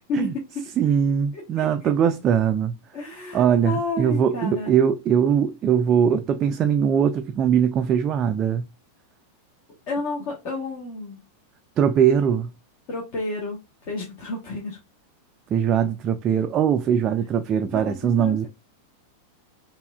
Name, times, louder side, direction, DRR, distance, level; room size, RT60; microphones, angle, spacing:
voice 1, 0.1-0.6 1.3-1.7 2.9-4.7 9.9-11.2 12.9-14.8 17.6-18.5, left 2 dB, 45° left, 1.2 m, -31 dB
voice 2, 0.8-2.7 3.3-8.7 11.8-12.5 15.5-18.5, right 8 dB, 30° right, 0.3 m, -21 dB
4.6 x 2.7 x 2.3 m
figure-of-eight pair, 90°, 0 cm